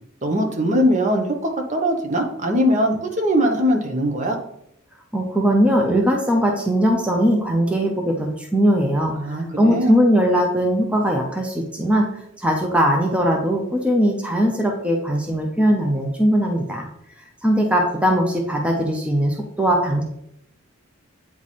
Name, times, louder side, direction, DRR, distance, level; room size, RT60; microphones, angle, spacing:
voice 1, 0.2-4.4 9.1-10.0, equal, 35° right, 3 dB, 0.9 m, -21 dB
voice 2, 5.1-12.0 12.4-16.9 17.4-20.0, equal, 5° right, 1 dB, 0.7 m, -20 dB
8.5 x 3.3 x 4.2 m, 0.73 s
head